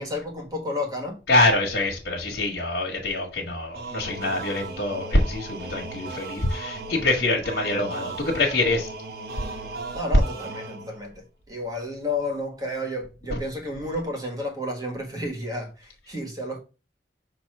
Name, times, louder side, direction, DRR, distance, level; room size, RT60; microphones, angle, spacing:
voice 1, 0.0-1.2 9.9-16.6, left 1 dB, 20° right, 1.6 m, -31 dB
voice 2, 1.3-8.9, left 2 dB, 70° left, 1.6 m, -24 dB
sound 1, 3.7-11.1, right 3 dB, 55° right, 1.1 m, -37 dB
6.1 x 3.0 x 5.4 m
head